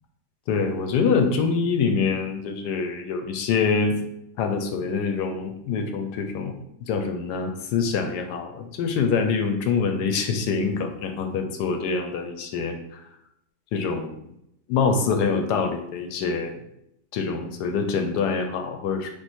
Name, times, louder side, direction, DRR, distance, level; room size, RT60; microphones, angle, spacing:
voice 1, 0.5-4.0 4.4-13.0 13.7-14.3 14.7-16.6 17.1-19.1, left 5 dB, 80° left, 6 dB, 1.1 m, -25 dB
3.6 x 2.8 x 4.1 m, 0.80 s
omnidirectional pair, 1.8 m